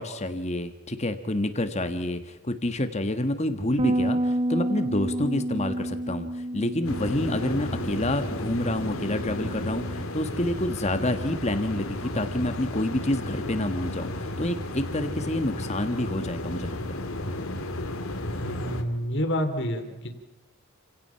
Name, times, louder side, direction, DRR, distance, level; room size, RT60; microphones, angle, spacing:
voice 1, 0.0-16.8, left 1 dB, 30° left, 8 dB, 1.5 m, -28 dB
Bass guitar, 3.8-10.0, right 1 dB, 25° right, 0.6 m, -30 dB
sound 1, 6.8-18.8, left 1 dB, 70° left, 2.4 m, -33 dB
voice 2, 18.4-20.1, equal, 50° left, 6 dB, 3.0 m, -28 dB
29.0 x 17.5 x 5.8 m, 1.1 s
head